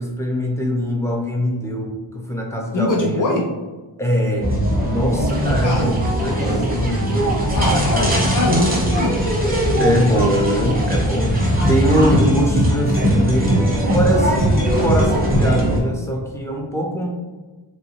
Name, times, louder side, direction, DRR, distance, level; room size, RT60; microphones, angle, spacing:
voice 1, 0.0-3.2 4.0-4.5 4.8-6.4 6.7-7.4 9.8-17.1, equal, 5° left, 1 dB, 0.5 m, -22 dB
voice 2, 2.7-3.4 5.6-5.9 7.5-9.1, left 1 dB, 40° left, -3 dB, 0.9 m, -21 dB
sound 1, 4.4-15.8, equal, 20° right, 0.8 m, -19 dB
3.0 x 2.6 x 2.8 m, 1.2 s
wide cardioid pair, 75°, 49 cm